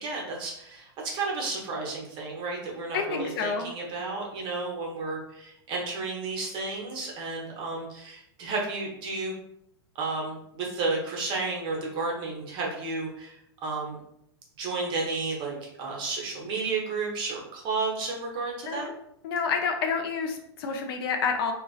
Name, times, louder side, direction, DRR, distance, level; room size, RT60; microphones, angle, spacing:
voice 1, 0.0-9.3 9.9-14.0 14.6-18.9, right 3 dB, 35° right, -2 dB, 0.8 m, -32 dB
voice 2, 2.9-3.7 18.7-18.9 19.2-21.5, left 5 dB, 60° left, 4 dB, 0.4 m, -29 dB
2.3 x 2.2 x 2.3 m, 0.77 s
hypercardioid pair, 120°, 14 cm